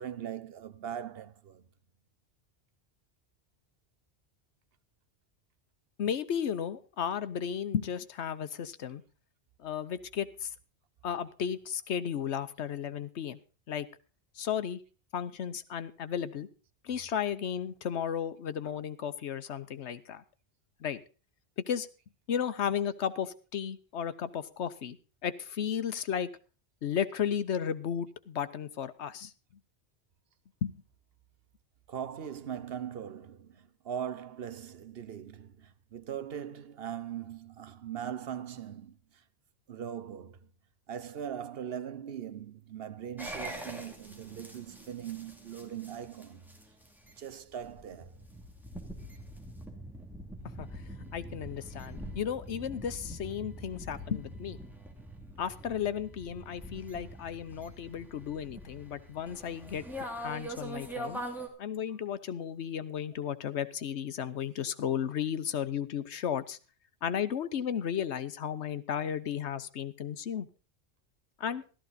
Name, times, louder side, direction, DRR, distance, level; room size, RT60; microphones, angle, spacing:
voice 1, 0.0-1.6 31.9-39.0 39.7-40.4 40.9-46.4 47.2-48.2, right 9 dB, 65° right, 1.0 m, -40 dB
voice 2, 6.0-9.0 9.6-10.5 11.0-13.4 13.7-13.9 14.4-14.8 15.1-16.5 16.8-20.2 20.8-21.0 21.7-21.9 22.3-25.0 25.2-26.3 26.8-29.3 30.6-30.7 50.6-50.7 51.1-54.6 55.4-59.8 60.2-61.2 61.6-66.6 67.0-70.5 71.4-71.6, left 8 dB, 85° left, 1.1 m, -34 dB
sound 1, 43.2-61.5, equal, ahead, 2.4 m, -44 dB
14.0 x 13.0 x 4.0 m
omnidirectional pair, 1.1 m